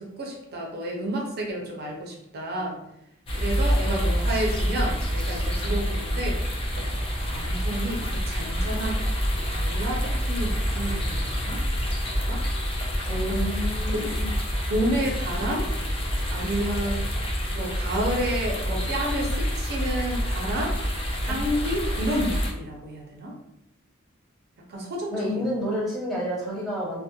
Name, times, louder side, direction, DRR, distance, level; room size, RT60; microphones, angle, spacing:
voice 1, 0.0-2.8 3.4-6.4 6.8-9.0 9.4-11.6 12.1-12.4 13.1-13.4 13.9-14.2 14.7-15.7 16.3-17.0 17.5-20.8 21.2-23.3 24.7-25.4, right 1 dB, 50° right, 0 dB, 0.5 m, -30 dB
sound 1, 3.3-22.5, equal, 25° left, 0.4 m, -27 dB
voice 2, 3.8-4.4 13.1-14.3 21.3-21.4 25.1-27.0, equal, ahead, -7 dB, 0.8 m, -30 dB
2.7 x 2.1 x 2.2 m, 0.80 s
head